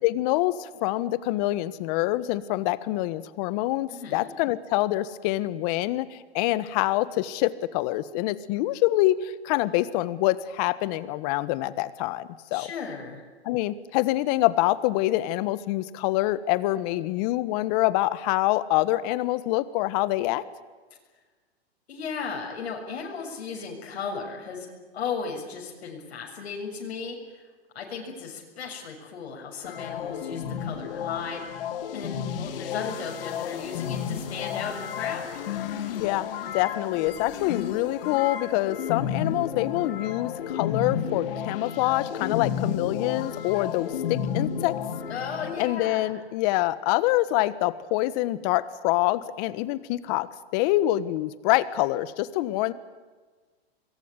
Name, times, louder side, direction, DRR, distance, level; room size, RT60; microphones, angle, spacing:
voice 1, 0.0-12.7 13.4-20.4 36.0-36.3 36.5-44.8 45.6-52.7, left 16 dB, 40° left, 15 dB, 1.4 m, -26 dB
voice 2, 3.9-4.3 12.5-13.2 21.9-24.7 24.9-27.5 27.8-31.6 31.9-35.4 45.1-46.1, left 5 dB, 75° left, 0 dB, 7.2 m, -35 dB
sound 1, 29.6-45.6, left 8 dB, 60° left, 3.6 m, -32 dB
26.0 x 23.0 x 9.8 m, 1.3 s
hypercardioid pair, 145°, 32 cm